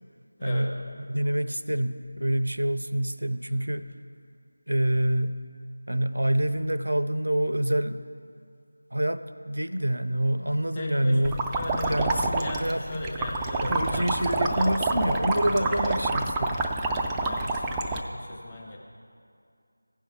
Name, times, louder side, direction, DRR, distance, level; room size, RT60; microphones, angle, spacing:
voice 1, 0.4-0.7 1.1-3.8 4.7-5.4 5.9-8.0 8.9-11.4 11.9-12.8 13.6-16.6, right 1 dB, 80° right, 11 dB, 0.5 m, -26 dB
voice 2, 10.7-15.0 15.5-16.0 16.9-18.8, left 1 dB, 15° left, -5 dB, 1.3 m, -36 dB
sound 1, 11.2-18.0, right 2 dB, 10° right, 0.3 m, -28 dB
16.0 x 5.4 x 3.5 m, 2.3 s
figure-of-eight pair, 170°, 0 cm